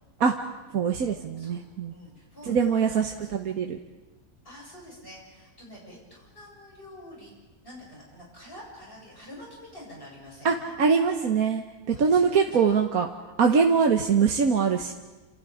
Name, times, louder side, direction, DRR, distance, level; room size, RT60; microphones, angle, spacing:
voice 1, 0.7-1.9 2.5-3.8 10.4-13.1 13.4-14.9, right 6 dB, 75° right, 3 dB, 1.6 m, -23 dB
voice 2, 1.9-3.3 4.4-7.3 7.6-10.7 11.9-12.6 13.7-13.9, left 1 dB, 40° left, -3 dB, 8.3 m, -47 dB
28.5 x 27.5 x 5.0 m, 1.2 s
omnidirectional pair, 1.5 m